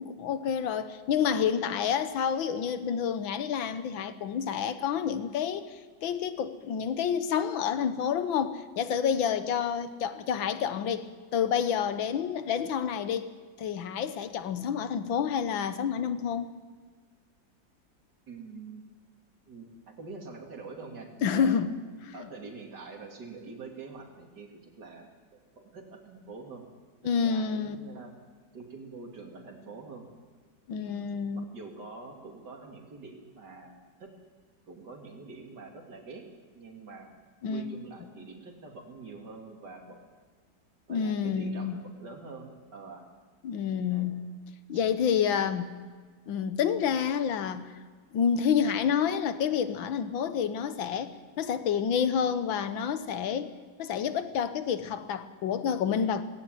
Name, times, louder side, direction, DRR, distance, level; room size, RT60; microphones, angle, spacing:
voice 1, 0.0-16.5 21.2-21.7 22.0-22.1 27.0-27.8 30.7-31.4 37.4-37.7 40.9-41.8 43.4-44.3 44.7-45.8 46.3-47.7 48.1-53.5 53.8-56.2, left 7 dB, 80° left, 12 dB, 1.9 m, -29 dB
voice 2, 18.3-18.8 19.5-19.7 20.0-21.5 22.1-25.1 25.6-26.6 27.2-28.1 28.5-30.1 30.8-31.0 31.3-33.7 34.0-34.1 34.7-36.2 36.5-37.1 37.5-40.0 40.9-43.0 43.9-44.1 44.7-44.8, right 4 dB, 60° right, 2 dB, 3.4 m, -45 dB
19.0 x 17.0 x 9.3 m, 1.5 s
omnidirectional pair, 2.1 m